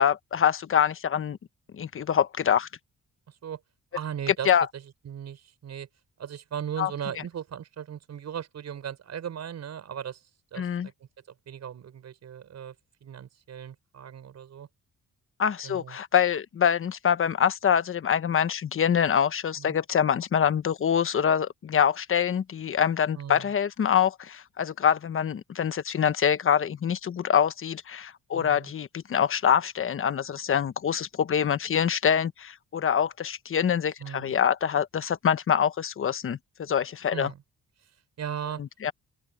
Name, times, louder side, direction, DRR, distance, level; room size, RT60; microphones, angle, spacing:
voice 1, 0.0-1.4 1.7-2.7 4.5-4.7 6.8-6.9 10.6-10.9 15.4-37.3 38.8-38.9, left 8 dB, 45° left, 1.2 m, -25 dB
voice 2, 3.3-3.6 3.9-5.9 6.2-10.2 10.5-10.9 11.5-12.7 13.0-14.7 15.6-16.0 19.6-19.8 23.2-23.5 28.3-28.7 34.0-34.4 37.1-37.4 38.2-38.6, right 9 dB, 60° right, 6.4 m, -37 dB
open air
cardioid pair, 90°, 30 cm